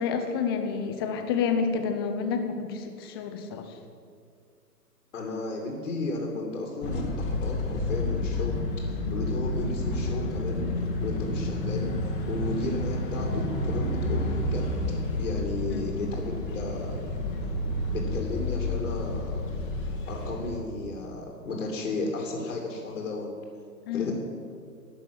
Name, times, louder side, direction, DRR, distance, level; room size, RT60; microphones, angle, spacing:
voice 1, 0.0-3.8 15.7-15.9 23.9-24.1, left 6 dB, 15° left, 6 dB, 0.7 m, -29 dB
voice 2, 5.1-8.6 9.1-10.7 11.0-11.9 12.3-14.6 15.2-17.0 17.9-19.5 20.1-23.3 23.9-24.1, left 2 dB, 55° left, 0 dB, 2.7 m, -33 dB
sound 1, 6.8-20.6, left 1 dB, 30° left, 1.9 m, -30 dB
12.0 x 6.9 x 9.7 m, 2.2 s
figure-of-eight pair, 125°, 48 cm